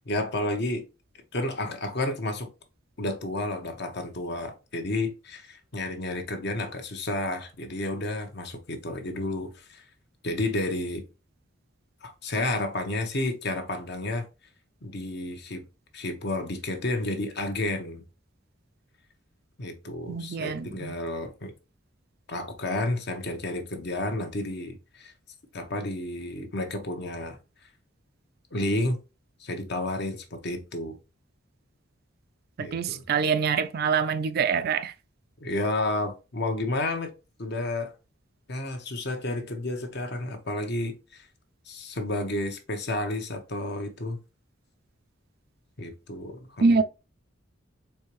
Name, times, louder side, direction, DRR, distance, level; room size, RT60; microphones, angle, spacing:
voice 1, 0.1-0.8 1.3-2.5 3.0-9.8 10.2-11.0 12.0-14.2 14.8-15.6 15.9-18.0 19.6-21.5 22.3-25.1 25.5-27.4 28.5-29.0 29.4-31.0 32.6-33.0 35.4-37.1 37.4-37.9 38.5-41.3 41.7-44.2 45.8-46.8, left 2 dB, 55° left, 0.9 m, -31 dB
voice 2, 20.1-21.0 32.6-34.9 46.6-46.8, right 5 dB, 50° right, 0.3 m, -25 dB
4.4 x 3.4 x 3.1 m
head